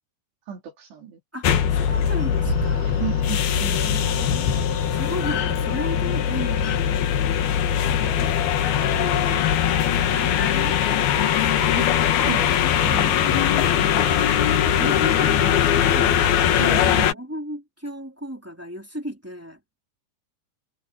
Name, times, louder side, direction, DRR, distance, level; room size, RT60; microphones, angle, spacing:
voice 1, 0.5-1.2 3.0-3.9 5.3-5.4 9.2-9.4 11.8-11.9 12.2-13.4 14.1-14.3 16.6-17.2, right 10 dB, 85° right, 6.0 m, -35 dB
voice 2, 1.3-3.0 3.5-7.1 7.5-8.4 8.7-9.5 9.9-12.2 12.8-14.4 14.8-16.2 16.8-19.6, equal, 5° right, 2.5 m, -35 dB
sound 1, 1.4-17.1, left 9 dB, 70° left, 3.5 m, -21 dB
sound 2, 1.6-7.0, right 7 dB, 60° right, 2.5 m, -38 dB
omnidirectional pair, 4.7 m